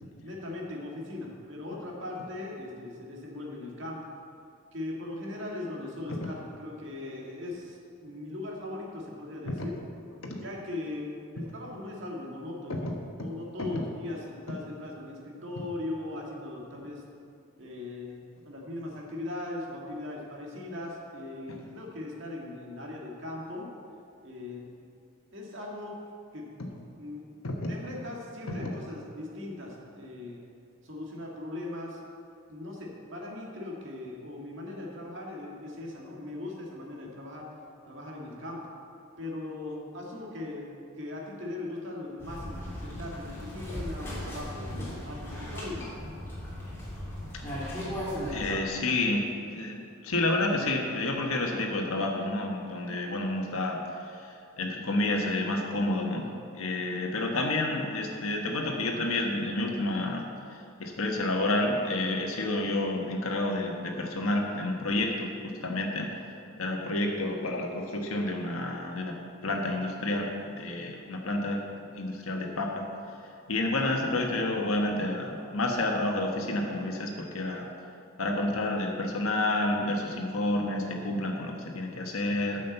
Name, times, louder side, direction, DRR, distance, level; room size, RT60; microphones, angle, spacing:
voice 1, 0.2-4.0 4.7-9.7 10.4-12.9 13.2-17.0 17.6-23.7 24.2-24.7 25.3-26.0 26.3-26.5 27.0-27.3 27.7-30.4 30.8-32.0 32.5-37.5 37.9-38.6 39.2-40.7 41.0-45.9, left 2 dB, 60° right, -2 dB, 2.1 m, -39 dB
sound 1, 42.2-48.6, equal, 10° left, 2.8 m, -37 dB
voice 2, 47.4-47.9 48.3-56.2 56.5-60.2 60.5-66.1 66.6-69.1 69.4-71.6 71.9-72.8 73.5-77.7 78.2-82.6, left 2 dB, 90° left, 0 dB, 1.3 m, -30 dB
9.5 x 6.4 x 8.0 m, 2.4 s
head